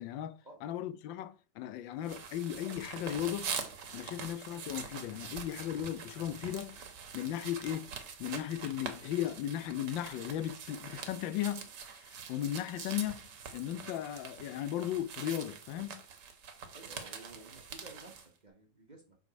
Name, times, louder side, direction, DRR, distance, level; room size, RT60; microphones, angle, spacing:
voice 1, 0.0-3.5 3.9-6.8 7.1-7.9 8.2-11.7 11.9-13.2 13.5-16.0, left 11 dB, 80° left, 1.3 m, -36 dB
sound 1, 2.0-18.3, right 6 dB, 65° right, 1.6 m, -44 dB
voice 2, 16.7-19.2, right 3 dB, 30° right, 1.1 m, -53 dB
7.0 x 3.8 x 5.1 m
omnidirectional pair, 2.0 m